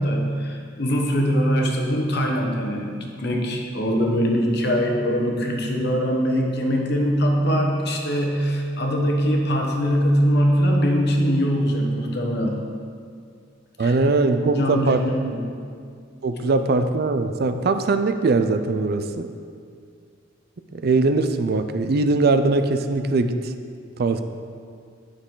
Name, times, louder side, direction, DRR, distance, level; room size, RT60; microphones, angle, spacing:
voice 1, 0.0-12.6 13.8-14.0 14.5-15.4, equal, 60° left, 1 dB, 1.1 m, -22 dB
voice 2, 13.8-15.0 16.2-19.3 20.7-23.5 24.0-24.2, right 3 dB, 55° right, 9 dB, 0.4 m, -21 dB
9.5 x 6.4 x 3.8 m, 2.2 s
head